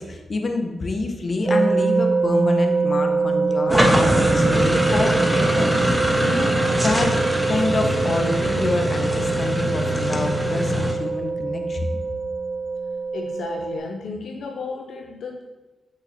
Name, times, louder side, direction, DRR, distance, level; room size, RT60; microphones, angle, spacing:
voice 1, 0.0-7.1 7.5-11.8, left 2 dB, 50° left, 4 dB, 0.9 m, -27 dB
sound 1, 1.4-13.8, right 4 dB, 40° right, 1.7 m, -24 dB
sound 2, 3.7-10.9, equal, 10° right, 1.1 m, -22 dB
voice 2, 13.1-15.4, left 4 dB, 80° left, 3 dB, 0.4 m, -33 dB
6.3 x 5.7 x 2.8 m, 1.1 s
cardioid pair, 55°, 0 cm